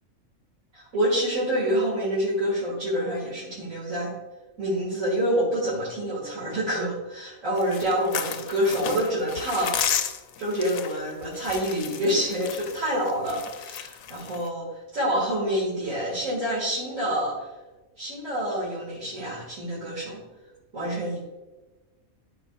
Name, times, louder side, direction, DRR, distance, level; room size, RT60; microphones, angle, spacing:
voice 1, 0.7-4.1 4.6-9.7 10.4-14.7 14.9-17.3 18.0-20.2 20.7-21.2, equal, 65° right, -7 dB, 2.3 m, -27 dB
sound 1, 7.6-14.5, left 9 dB, 85° left, 1.0 m, -33 dB
13.0 x 5.1 x 2.4 m, 1.1 s
omnidirectional pair, 1.5 m